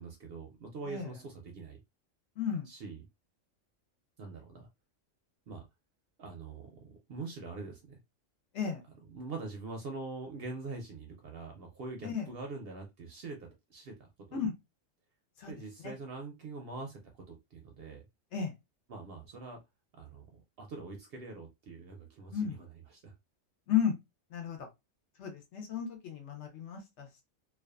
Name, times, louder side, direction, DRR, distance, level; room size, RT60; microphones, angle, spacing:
voice 1, 0.0-1.8 2.7-3.0 4.2-4.7 5.5-5.6 6.2-8.0 9.1-14.4 15.5-18.0 18.9-19.6 20.0-22.7 22.9-23.1, right 3 dB, 65° right, 0.6 m, -44 dB
voice 2, 2.4-2.7 8.5-8.8 12.0-12.3 14.3-14.5 15.4-15.5 15.8-15.9 18.3-18.5 22.3-22.6 23.7-23.9 24.3-24.7 25.2-27.2, left 8 dB, 65° left, 0.9 m, -34 dB
2.4 x 2.3 x 2.2 m
omnidirectional pair, 1.3 m